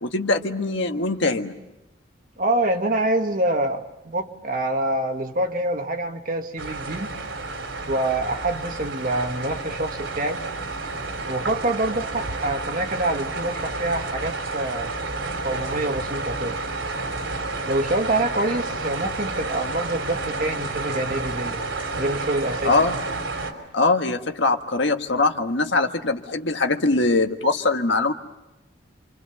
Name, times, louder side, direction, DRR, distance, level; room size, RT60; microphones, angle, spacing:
voice 1, 0.0-1.5 22.6-22.9 23.7-28.1, left 3 dB, 65° left, 5 dB, 1.6 m, -22 dB
voice 2, 2.4-7.1 7.9-10.4 11.3-14.9 15.4-16.6 17.6-21.6 22.0-22.7, right 1 dB, 40° right, 4 dB, 1.6 m, -26 dB
sound 1, 6.6-23.5, right 3 dB, 80° right, 3.9 m, -30 dB
28.0 x 26.5 x 7.1 m, 1.0 s
head